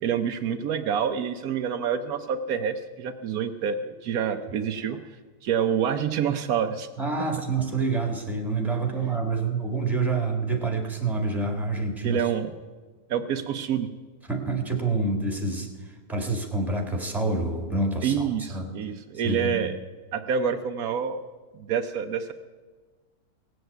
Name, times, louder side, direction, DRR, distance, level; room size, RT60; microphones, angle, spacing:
voice 1, 0.0-5.0 5.4-6.9 12.0-12.5 13.1-13.9 18.0-19.8 20.1-21.2 21.5-22.3, right 7 dB, 75° right, 8 dB, 1.1 m, -27 dB
voice 2, 7.0-12.2 14.3-18.7 19.2-19.6, right 3 dB, ahead, 3 dB, 1.7 m, -27 dB
17.5 x 8.0 x 7.9 m, 1.4 s
omnidirectional pair, 1.6 m